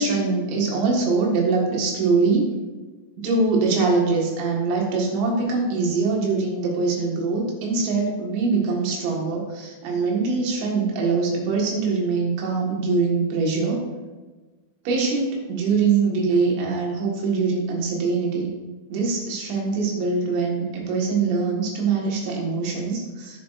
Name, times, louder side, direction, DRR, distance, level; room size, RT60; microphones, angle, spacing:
voice 1, 0.0-2.5 3.2-13.8 14.9-18.5 18.9-23.4, right 4 dB, 75° right, -1 dB, 3.9 m, -23 dB
10.5 x 10.5 x 2.5 m, 1.2 s
omnidirectional pair, 5.3 m